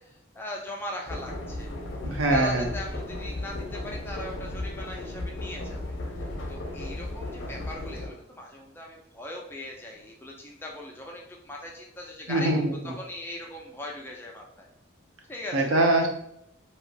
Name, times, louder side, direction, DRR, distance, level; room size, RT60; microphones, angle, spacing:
voice 1, 0.0-1.7 2.3-5.9 6.5-12.5 12.8-14.7 15.3-15.7, left 1 dB, 10° left, -1 dB, 0.3 m, -39 dB
sound 1, 1.1-8.1, left 1 dB, 70° left, 0.6 m, -35 dB
voice 2, 2.0-2.7 12.3-12.9 15.5-16.1, right 2 dB, 85° right, 2 dB, 0.6 m, -23 dB
2.8 x 2.7 x 2.2 m, 0.75 s
head